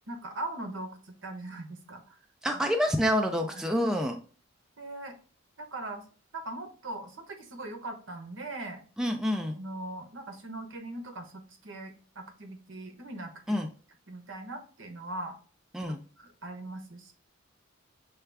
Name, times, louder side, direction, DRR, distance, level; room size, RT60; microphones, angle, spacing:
voice 1, 0.1-2.2 3.5-3.6 4.8-5.1 5.6-6.1 6.3-8.8 9.5-13.6 14.1-15.4 16.2-17.1, right 2 dB, 70° right, 5 dB, 0.9 m, -40 dB
voice 2, 2.4-4.2 9.0-9.6 13.5-13.7 15.7-16.0, equal, 5° right, 3 dB, 0.4 m, -27 dB
6.5 x 2.3 x 3.3 m, 0.39 s
head